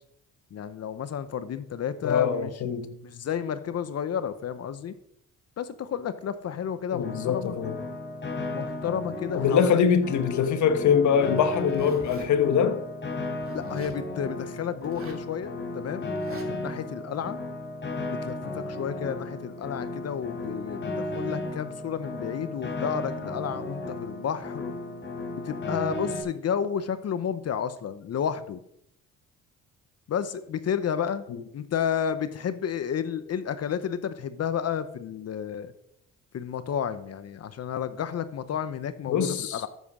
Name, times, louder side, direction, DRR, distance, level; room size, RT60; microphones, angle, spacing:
voice 1, 0.5-2.5 3.0-4.9 5.6-7.6 8.5-9.7 13.5-17.4 18.1-24.7 25.3-28.6 30.1-31.2 31.5-35.7 36.3-39.7, left 8 dB, 55° left, 0.9 m, -31 dB
voice 2, 2.0-2.9 6.9-7.8 9.3-12.8 31.3-31.4 39.1-39.6, left 7 dB, 70° left, 1.3 m, -23 dB
Piano, 7.0-26.2, left 2 dB, 40° left, 4.4 m, -35 dB
Zipper (clothing), 11.4-12.3 13.4-14.0 14.8-15.3 16.1-16.5, right 5 dB, 45° right, 2.9 m, -45 dB
13.5 x 7.5 x 6.2 m
cardioid pair, 90°, 30 cm